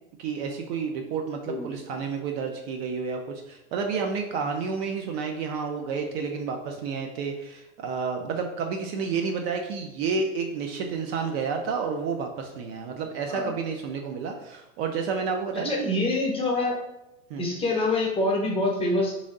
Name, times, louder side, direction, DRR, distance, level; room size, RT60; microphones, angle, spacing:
voice 1, 0.2-16.0 17.3-17.5, right 5 dB, 50° right, 3 dB, 0.5 m, -30 dB
voice 2, 15.6-16.7 17.4-19.2, left 2 dB, 15° left, -2 dB, 0.8 m, -25 dB
3.1 x 2.6 x 3.7 m, 0.89 s
hypercardioid pair, 120°, 42 cm